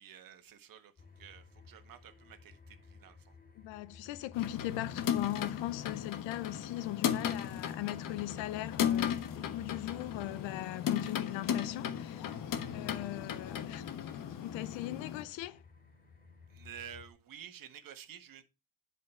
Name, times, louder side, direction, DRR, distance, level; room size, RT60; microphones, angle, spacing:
voice 1, 0.0-3.4 16.5-18.4, right 9 dB, 45° right, 1.6 m, -51 dB
sound 1, 1.0-17.1, left 4 dB, 20° left, 3.1 m, -56 dB
voice 2, 3.6-12.3 12.7-13.8 14.4-15.6, left 16 dB, 70° left, 0.8 m, -39 dB
sound 2, 4.3-15.2, left 9 dB, 45° left, 1.3 m, -36 dB
10.5 x 5.3 x 4.3 m
cardioid pair, 120°, 47 cm